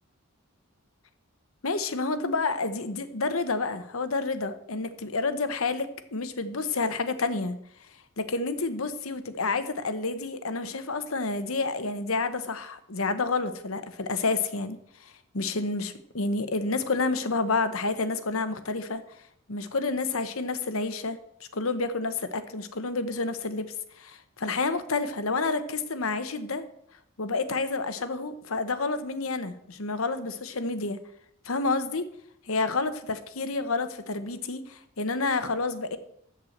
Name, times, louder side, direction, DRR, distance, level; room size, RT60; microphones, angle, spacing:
voice 1, 1.6-7.6 8.2-19.0 19.5-23.7 24.0-26.6 27.2-31.0 31.4-32.0 32.5-36.0, left 3 dB, 75° left, 10 dB, 1.1 m, -29 dB
13.5 x 4.7 x 7.9 m, 0.70 s
head